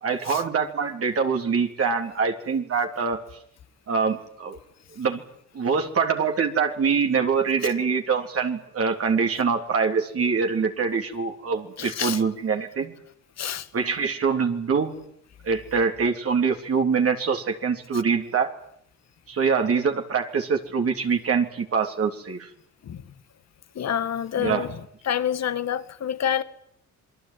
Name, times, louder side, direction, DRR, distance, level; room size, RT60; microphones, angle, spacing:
voice 1, 0.0-3.2 3.9-4.6 5.0-5.2 5.5-12.9 13.7-14.9 15.4-18.5 19.3-22.5 24.4-24.7, right 5 dB, 50° right, 3.4 m, -24 dB
voice 2, 11.8-12.2 13.4-13.7 22.8-23.0 23.8-24.7 25.1-26.4, left 9 dB, 60° left, 2.0 m, -27 dB
28.0 x 21.5 x 9.3 m
cardioid pair, 90°, 30 cm